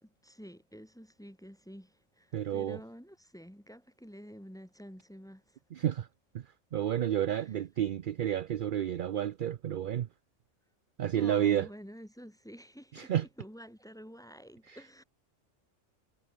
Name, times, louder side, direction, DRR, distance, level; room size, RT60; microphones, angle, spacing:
voice 1, 0.0-5.6 11.1-15.0, equal, 5° left, 1.9 m, -49 dB
voice 2, 2.3-2.8 5.7-6.1 6.3-6.4 6.7-10.1 11.0-11.7 12.9-13.3 14.7-14.8, right 10 dB, 55° right, 0.6 m, -30 dB
omnidirectional pair, 1.3 m